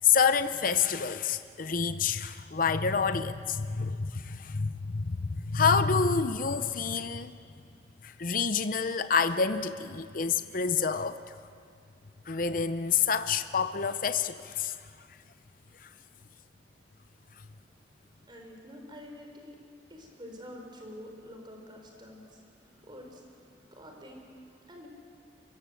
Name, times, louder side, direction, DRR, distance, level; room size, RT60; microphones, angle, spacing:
voice 1, 0.0-7.3 8.0-11.2 12.3-14.7, left 5 dB, 50° left, 10 dB, 0.7 m, -28 dB
voice 2, 18.1-19.6 19.9-24.9, left 1 dB, 25° right, 2 dB, 4.0 m, -48 dB
25.0 x 21.5 x 7.7 m, 2.2 s
head